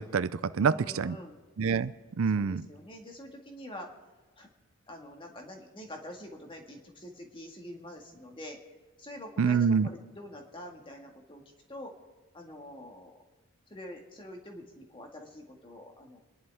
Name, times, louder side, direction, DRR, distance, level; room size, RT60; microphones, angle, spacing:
voice 1, 0.0-1.2 1.6-2.6 9.4-9.9, right 6 dB, 70° right, 15 dB, 0.5 m, -26 dB
voice 2, 0.6-1.4 2.3-3.9 4.4-4.5 4.9-8.6 9.0-11.4 11.7-11.9 12.3-13.2 13.7-16.2, left 1 dB, 25° left, 2 dB, 1.9 m, -45 dB
29.0 x 11.0 x 3.6 m, 1.3 s
head